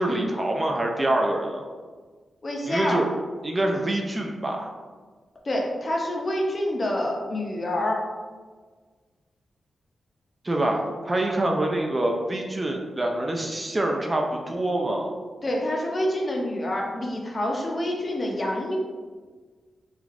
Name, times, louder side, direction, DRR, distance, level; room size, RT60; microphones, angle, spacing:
voice 1, 0.0-1.7 2.7-3.1 3.4-4.8 10.4-15.1, right 1 dB, 25° right, 1 dB, 0.3 m, -25 dB
voice 2, 2.4-3.0 5.4-8.0 15.4-18.8, left 1 dB, 40° left, -1 dB, 0.5 m, -27 dB
3.2 x 2.3 x 2.4 m, 1.5 s
cardioid pair, 90°, 0 cm